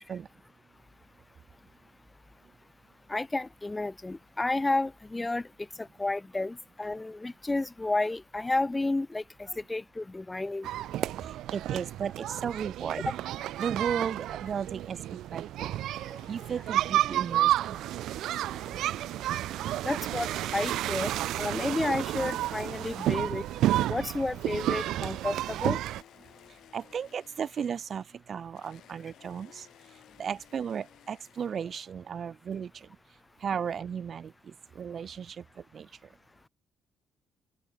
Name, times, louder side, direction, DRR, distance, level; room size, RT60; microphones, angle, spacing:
voice 1, 3.1-5.5 5.8-10.7 19.8-21.1 21.4-23.4 23.9-25.8, left 2 dB, 15° left, 1.1 m, -31 dB
sound 1, 10.6-26.0, right 14 dB, 85° right, 1.3 m, -31 dB
voice 2, 11.5-13.0 13.6-15.7 16.0-17.8 26.7-28.0 28.3-29.7 30.2-32.7 33.4-34.3 34.8-35.4 35.7-35.9, right 7 dB, 50° right, 2.4 m, -35 dB
sound 2, 15.7-32.0, left 12 dB, 80° left, 7.2 m, -57 dB
open air
cardioid pair, 90°, 0 cm